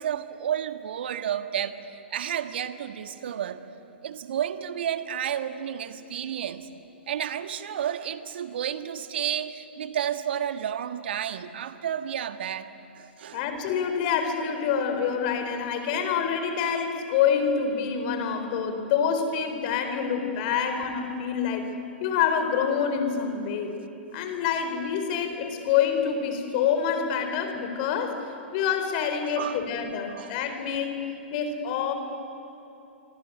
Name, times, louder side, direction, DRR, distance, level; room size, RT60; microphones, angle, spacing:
voice 1, 0.0-3.6 4.0-6.7 7.1-12.7 13.0-13.4 20.6-20.8 29.4-29.6 30.1-30.4, right 9 dB, 65° right, 9 dB, 1.6 m, -31 dB
voice 2, 13.3-21.7 22.0-23.8 24.1-28.2 28.5-31.0 31.3-31.9, left 7 dB, 45° left, 7 dB, 4.2 m, -26 dB
26.0 x 24.5 x 9.3 m, 2.8 s
figure-of-eight pair, 110°, 6 cm